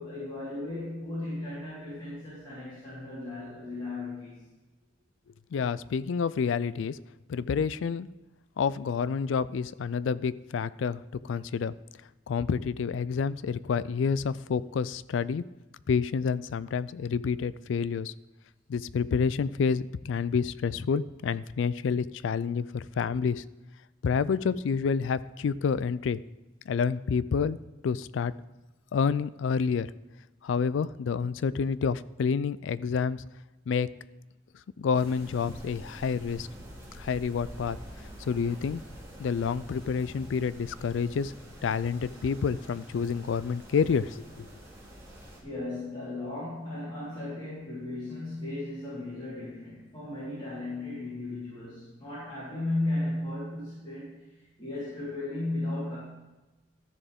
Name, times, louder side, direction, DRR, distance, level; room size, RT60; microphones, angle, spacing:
voice 1, 0.0-4.3 45.1-54.3 54.6-56.0, left 2 dB, 30° left, -12 dB, 3.9 m, -35 dB
voice 2, 5.5-7.0 7.3-8.1 8.6-11.7 12.3-15.4 15.9-18.1 18.7-23.4 24.0-26.2 26.7-27.6 27.8-28.3 28.9-29.9 30.4-33.2 33.7-33.9 34.8-36.5 36.9-37.8 38.3-38.8 39.2-41.3 41.6-44.5, left 6 dB, 85° left, 18 dB, 0.3 m, -28 dB
sound 1, 34.9-45.4, equal, 15° right, 2.3 m, -47 dB
13.5 x 6.8 x 3.6 m, 1.1 s
head